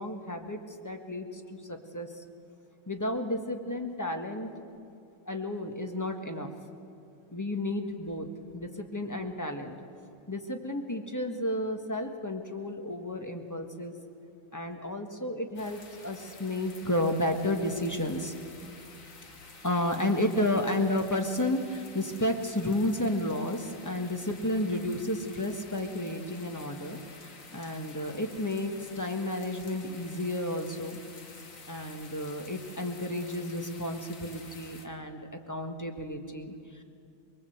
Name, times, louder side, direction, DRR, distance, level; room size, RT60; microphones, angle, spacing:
voice 1, 0.0-2.2 2.9-4.5 5.2-6.5 7.3-8.3 8.5-9.7 10.3-14.0 14.5-18.3 19.6-31.0 31.7-35.2 35.5-36.8, left 1 dB, 10° left, 4 dB, 1.4 m, -32 dB
sound 1, 15.6-34.9, left 3 dB, 45° left, 2.1 m, -50 dB
23.5 x 23.0 x 8.0 m, 2.5 s
omnidirectional pair, 2.2 m